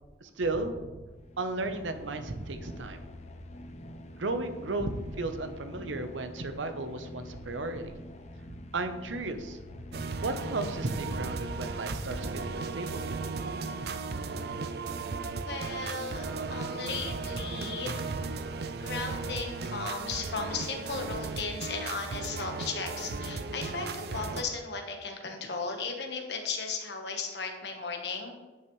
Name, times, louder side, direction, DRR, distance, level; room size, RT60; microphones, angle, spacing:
voice 1, 0.2-0.8 1.4-3.0 4.2-7.9 8.7-9.6 10.2-13.2 13.8-13.9, right 2 dB, 90° right, 8 dB, 0.8 m, -34 dB
sound 1, 1.2-12.8, left 1 dB, 35° left, 0.5 m, -47 dB
sound 2, 9.9-24.4, right 4 dB, 55° right, 0.5 m, -36 dB
voice 2, 15.5-18.3 18.8-28.3, left 4 dB, 65° left, 3 dB, 1.2 m, -36 dB
10.5 x 6.2 x 3.1 m, 1.2 s
head